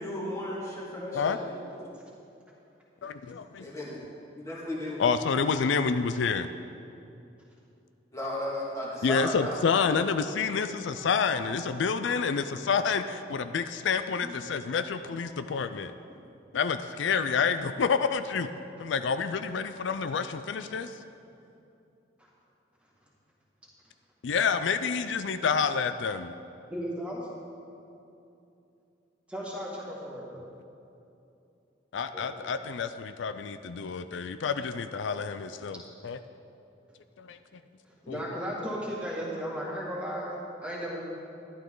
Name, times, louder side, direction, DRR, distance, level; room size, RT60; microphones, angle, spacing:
voice 1, 0.0-1.6 3.6-4.0 4.4-5.0 8.1-9.6 10.9-11.5 15.1-15.4, left 1 dB, 15° left, -5 dB, 2.0 m, -35 dB
voice 2, 3.0-3.7 5.0-6.5 9.0-15.9 16.5-18.5 18.8-20.9 24.2-26.3 31.9-36.2 37.2-37.4 38.1-38.2, left 5 dB, 80° left, 10 dB, 0.4 m, -28 dB
voice 3, 26.7-27.3 29.3-30.4 32.1-32.3 38.0-41.0, equal, 5° right, -5 dB, 2.0 m, -35 dB
12.0 x 11.5 x 3.8 m, 2.7 s
head